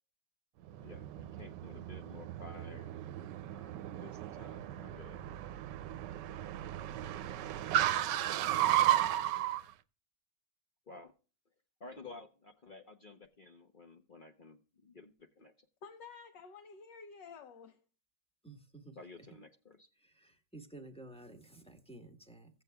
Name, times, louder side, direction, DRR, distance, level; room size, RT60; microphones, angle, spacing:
voice 1, 0.7-3.0 3.5-5.2 10.9-11.1 11.8-15.7 19.0-19.9, left 3 dB, 45° left, 0.6 m, -53 dB
Car, 0.7-9.6, right 12 dB, 80° right, 1.2 m, -34 dB
voice 2, 15.8-17.8, left 5 dB, 80° left, 1.6 m, -51 dB
voice 3, 18.4-19.0 20.0-22.5, right 2 dB, 5° left, 1.0 m, -52 dB
16.0 x 8.0 x 2.2 m
omnidirectional pair, 1.9 m